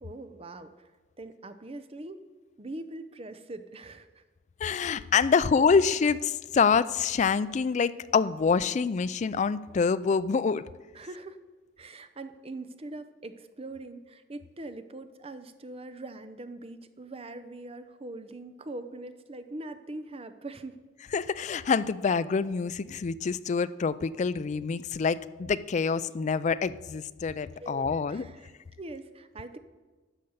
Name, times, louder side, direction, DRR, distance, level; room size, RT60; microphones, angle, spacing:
voice 1, 0.0-0.9 1.2-2.2 2.6-4.2 10.9-11.4 11.8-20.8 27.6-29.6, right 2 dB, 30° right, 10 dB, 0.7 m, -42 dB
voice 2, 4.6-10.6 21.1-28.2, left 5 dB, 40° left, 15 dB, 0.3 m, -26 dB
12.5 x 5.3 x 8.0 m, 1.3 s
head